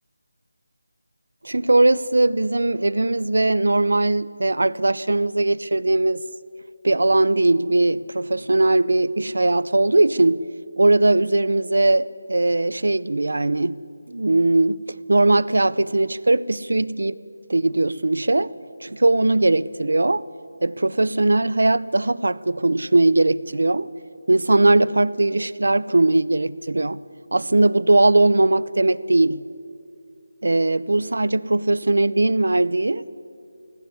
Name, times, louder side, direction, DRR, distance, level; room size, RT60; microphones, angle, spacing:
voice 1, 1.4-6.2 6.8-10.4 10.8-13.8 14.1-17.2 17.5-18.5 18.8-20.2 20.6-23.9 24.3-27.0 27.3-29.4 30.4-33.0, right 2 dB, 80° right, 20 dB, 0.7 m, -19 dB
19.0 x 17.0 x 9.7 m, 2.5 s
figure-of-eight pair, 175°, 0 cm